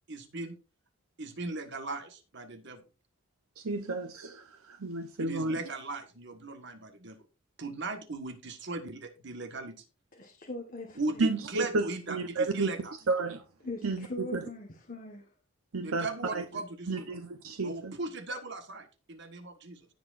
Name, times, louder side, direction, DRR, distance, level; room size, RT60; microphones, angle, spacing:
voice 1, 0.1-0.5 1.2-2.8 5.2-7.2 7.6-9.8 10.9-12.9 15.8-17.1 17.6-19.9, right 2 dB, 55° right, 1.5 m, -38 dB
voice 2, 3.6-5.6 11.2-12.7 13.1-13.4 13.8-14.4 15.7-16.4 16.9-17.9, right 3 dB, 85° right, 0.8 m, -32 dB
voice 3, 10.1-11.0 13.6-15.2, left 2 dB, 40° left, 1.4 m, -40 dB
17.5 x 6.1 x 2.6 m
head